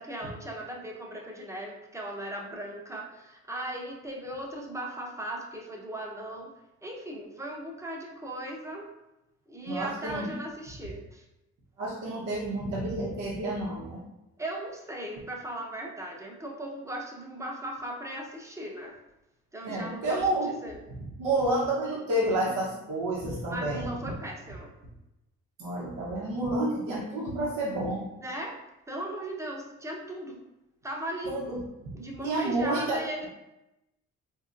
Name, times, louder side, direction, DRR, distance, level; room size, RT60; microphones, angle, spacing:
voice 1, 0.0-6.5 6.8-8.9 9.5-11.2 14.4-19.0 19.5-20.8 23.5-24.7 28.2-28.6 28.9-30.4 30.8-31.3 31.9-33.3, right 1 dB, 10° right, -1 dB, 0.7 m, -37 dB
voice 2, 9.7-10.3 11.8-14.0 19.6-20.5 21.2-23.9 25.6-28.0 31.3-31.6 32.2-33.3, right 1 dB, 80° right, -4 dB, 1.0 m, -29 dB
4.1 x 2.8 x 2.4 m, 0.94 s
cardioid pair, 90°, 30 cm